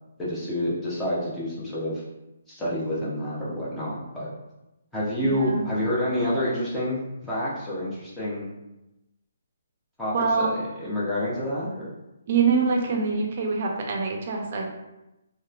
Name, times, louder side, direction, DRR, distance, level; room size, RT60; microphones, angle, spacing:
voice 1, 0.2-2.0 2.5-4.3 4.9-8.5 10.0-11.9, left 1 dB, 5° left, -8 dB, 0.6 m, -28 dB
voice 2, 5.3-5.7 10.1-10.6 12.3-14.7, right 5 dB, 45° right, 1 dB, 0.5 m, -24 dB
2.9 x 2.1 x 2.4 m, 0.95 s
hypercardioid pair, 165°, 0 cm